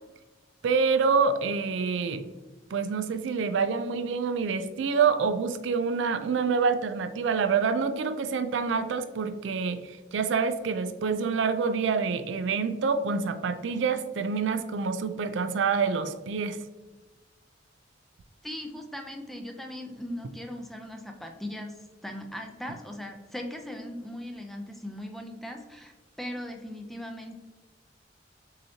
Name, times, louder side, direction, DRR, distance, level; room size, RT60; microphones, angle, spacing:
voice 1, 0.6-2.2 2.7-16.6, right 5 dB, 75° right, 10 dB, 0.4 m, -27 dB
voice 2, 18.4-27.3, left 1 dB, ahead, 3 dB, 0.4 m, -39 dB
6.4 x 2.8 x 2.7 m, 1.2 s
head